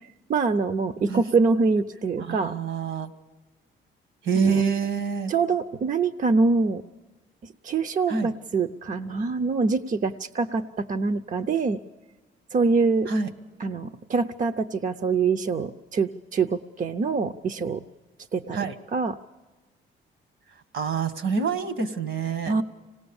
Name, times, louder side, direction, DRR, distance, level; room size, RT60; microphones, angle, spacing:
voice 1, 0.3-2.6 4.4-4.6 5.3-6.8 7.4-10.6 10.9-11.8 12.5-13.1 13.6-17.8 18.3-18.6 18.9-19.2 22.5-22.6, right 4 dB, 40° right, 10 dB, 0.7 m, -24 dB
voice 2, 2.2-3.1 4.2-5.3 8.1-8.3 13.1-13.3 18.5-18.8 20.7-22.5, right 5 dB, 70° right, 11 dB, 1.7 m, -26 dB
25.5 x 18.5 x 7.1 m, 1.2 s
cardioid pair, 90°, 20 cm